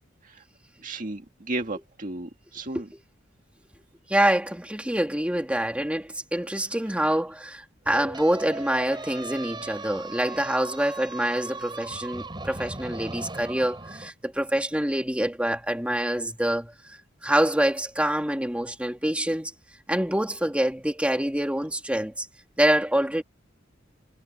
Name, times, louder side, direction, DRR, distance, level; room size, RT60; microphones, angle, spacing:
voice 1, 0.8-2.9, right 2 dB, 45° right, 1.8 m, -33 dB
voice 2, 4.1-17.0 17.2-19.5 19.9-22.3 22.6-23.2, right 1 dB, 5° right, 2.5 m, -26 dB
sound 1, 7.8-14.1, right 3 dB, 25° right, 4.4 m, -38 dB
head